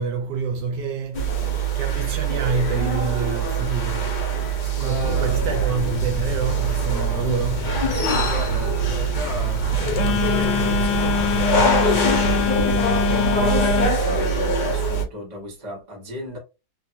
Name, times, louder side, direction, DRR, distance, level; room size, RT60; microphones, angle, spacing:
voice 1, 0.0-7.8 8.2-8.6, right 5 dB, 80° right, 1.2 m, -28 dB
sound 1, 1.1-15.0, right 3 dB, 55° left, 0.5 m, -23 dB
voice 2, 4.7-5.6 7.9-11.8 12.3-16.4, left 1 dB, 25° right, 1.1 m, -34 dB
Telephone, 5.0-13.9, left 5 dB, 75° left, 1.2 m, -25 dB
sound 2, 9.7-13.9, left 1 dB, ahead, 1.3 m, -38 dB
3.1 x 2.5 x 2.8 m
omnidirectional pair, 1.9 m